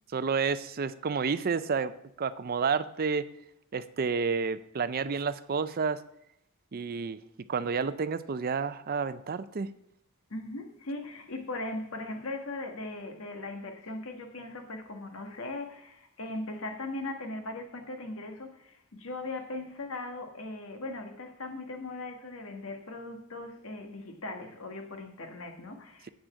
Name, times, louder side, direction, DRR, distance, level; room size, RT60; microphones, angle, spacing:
voice 1, 0.1-3.3 3.7-6.0 6.7-7.2 7.5-9.7, right 5 dB, 45° right, 0.5 m, -30 dB
voice 2, 10.3-26.1, left 2 dB, 70° left, 1.4 m, -39 dB
8.1 x 6.2 x 7.1 m
head